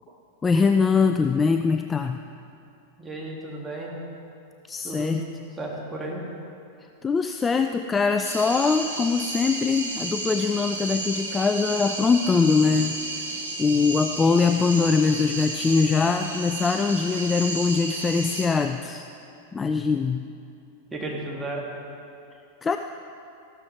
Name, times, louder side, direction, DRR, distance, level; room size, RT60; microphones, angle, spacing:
voice 1, 0.4-2.2 4.7-5.2 7.0-13.0 13.6-19.1 19.5-20.3 22.6-22.8, left 5 dB, 15° left, 7 dB, 0.4 m, -22 dB
voice 2, 3.0-3.9 4.8-5.2 5.6-6.2 20.9-21.7, right 2 dB, 10° right, -3 dB, 2.5 m, -33 dB
sound 1, 8.2-18.5, right 2 dB, 70° right, 1.7 m, -32 dB
14.5 x 12.5 x 3.5 m, 2.6 s
figure-of-eight pair, 90°, 0 cm